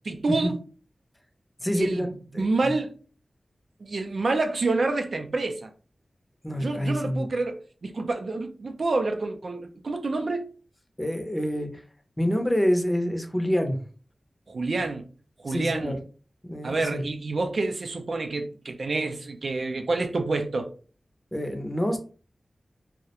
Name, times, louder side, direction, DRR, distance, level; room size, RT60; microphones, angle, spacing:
voice 1, 0.1-0.6 1.7-3.0 3.8-5.7 6.6-10.5 14.5-15.1 15.4-16.0 16.6-20.7, right 3 dB, 70° right, 0.4 m, -28 dB
voice 2, 1.6-2.5 6.4-7.3 11.0-11.8 12.2-13.8 15.5-16.0 16.4-17.0 21.3-22.0, equal, 15° left, 0.5 m, -27 dB
2.3 x 2.1 x 2.8 m
wide cardioid pair, 65°, 0 cm